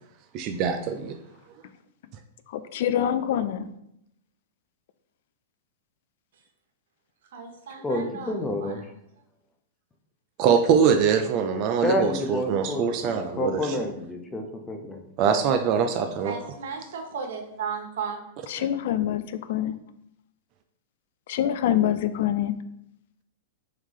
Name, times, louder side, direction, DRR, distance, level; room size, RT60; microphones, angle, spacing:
voice 1, 0.3-1.2 10.4-13.8 15.2-16.3, right 7 dB, 40° right, 7 dB, 0.4 m, -23 dB
voice 2, 2.5-3.7 18.5-19.8 21.3-22.6, left 10 dB, 60° left, 12 dB, 0.3 m, -25 dB
voice 3, 7.3-8.9 16.2-18.2, right 6 dB, 70° right, 3 dB, 1.0 m, -35 dB
voice 4, 7.8-8.8 11.8-15.0, left 1 dB, 10° left, 4 dB, 0.6 m, -29 dB
3.6 x 3.3 x 3.7 m, 0.79 s
hypercardioid pair, 135°, 0 cm